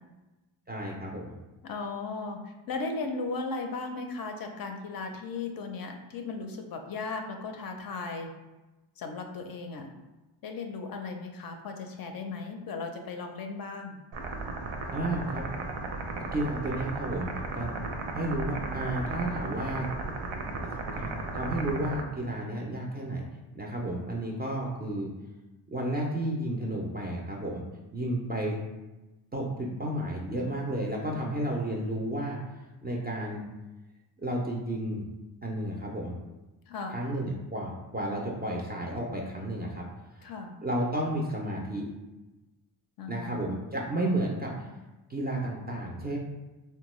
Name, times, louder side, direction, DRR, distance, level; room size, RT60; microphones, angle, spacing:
voice 1, 0.7-1.3 14.9-15.4 16.3-17.7 18.1-19.9 20.6-23.3 23.5-25.1 25.7-27.6 27.9-28.6 29.3-32.4 32.8-33.4 34.2-35.1 35.4-36.1 36.9-39.8 40.2-40.3 40.6-41.9 43.1-44.7 45.1-46.2, right 1 dB, 20° right, -2 dB, 0.3 m, -32 dB
voice 2, 1.6-8.3 9.0-9.9 10.4-14.0 36.7-37.0 40.2-40.6 43.0-43.6, left 3 dB, 50° left, 4 dB, 0.4 m, -36 dB
sound 1, 14.1-22.0, right 3 dB, 75° right, 0.6 m, -35 dB
3.5 x 2.2 x 3.0 m, 1.1 s
cardioid pair, 105°, 48 cm